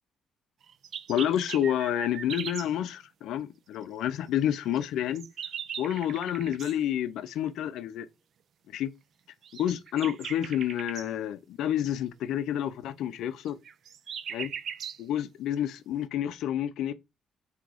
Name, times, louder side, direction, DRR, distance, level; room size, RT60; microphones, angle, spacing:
sound 1, 0.6-2.7 4.7-6.8 9.4-11.1 13.5-15.0, right 8 dB, 65° right, 0.4 m, -39 dB
voice 1, 1.1-5.3 5.8-8.1 8.7-8.9 9.5-13.6 14.3-14.5 15.0-16.9, left 10 dB, 85° left, 0.4 m, -29 dB
3.6 x 2.9 x 4.8 m
cardioid pair, 90°, 0 cm